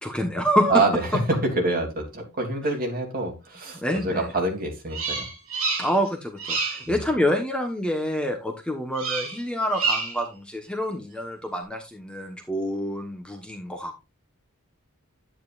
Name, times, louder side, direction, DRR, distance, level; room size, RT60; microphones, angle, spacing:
voice 1, 0.0-0.8 3.8-4.3 5.8-14.1, equal, 5° left, 3 dB, 1.2 m, -27 dB
voice 2, 0.7-1.0 1.3-5.3 6.8-7.0, right 2 dB, 40° right, 2 dB, 3.0 m, -26 dB
Bird vocalization bird call bird song, 4.9-6.1 6.4-6.9 8.9-9.4 9.7-10.3, right 4 dB, 65° right, 3.7 m, -28 dB
10.5 x 9.4 x 2.5 m, 0.25 s
head